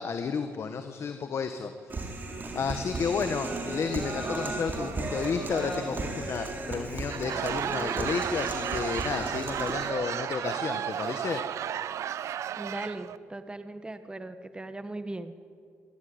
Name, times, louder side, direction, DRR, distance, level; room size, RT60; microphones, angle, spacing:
voice 1, 0.0-2.1 2.5-11.4, left 5 dB, 55° left, 8 dB, 1.5 m, -32 dB
Human voice, 1.9-9.9, right 3 dB, 40° right, 4.0 m, -35 dB
Laughter / Crowd, 6.9-13.2, right 10 dB, 75° right, 0.7 m, -33 dB
voice 2, 12.6-15.3, right 2 dB, 20° right, 10 dB, 1.3 m, -38 dB
26.5 x 13.5 x 9.7 m, 2.3 s
cardioid pair, 70°, 5 cm